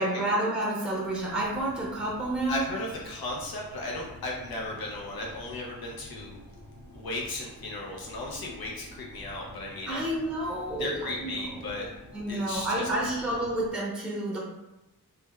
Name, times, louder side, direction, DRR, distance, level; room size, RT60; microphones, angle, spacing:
voice 1, 0.0-2.6 9.9-11.4 11.7-11.8 12.1-14.4, right 1 dB, 5° right, -4 dB, 0.6 m, -29 dB
sound 1, 1.2-13.7, equal, 50° left, 1.4 m, -49 dB
voice 2, 2.5-6.4 6.9-10.0 10.7-11.9 12.3-12.9, left 2 dB, 70° left, -2 dB, 0.6 m, -35 dB
3.2 x 2.1 x 2.2 m, 0.96 s
wide cardioid pair, 85°, 37 cm